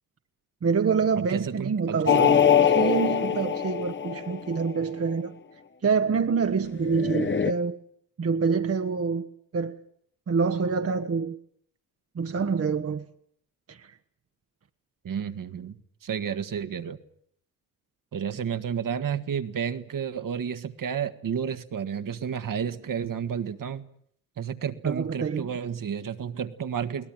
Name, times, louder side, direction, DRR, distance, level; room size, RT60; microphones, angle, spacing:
voice 1, 0.6-5.3 5.8-7.8 8.2-9.3 9.5-9.8 10.3-11.4 12.1-13.1 13.7-14.0 24.8-25.5, right 5 dB, 35° right, 1.2 m, -26 dB
voice 2, 1.2-2.4 15.0-17.0 18.1-23.8 24.4-27.1, right 7 dB, 50° right, 1.7 m, -31 dB
sound 1, 2.1-4.7 6.8-7.5, left 7 dB, 25° left, 1.2 m, -22 dB
22.5 x 18.0 x 9.0 m
hypercardioid pair, 55°, 42 cm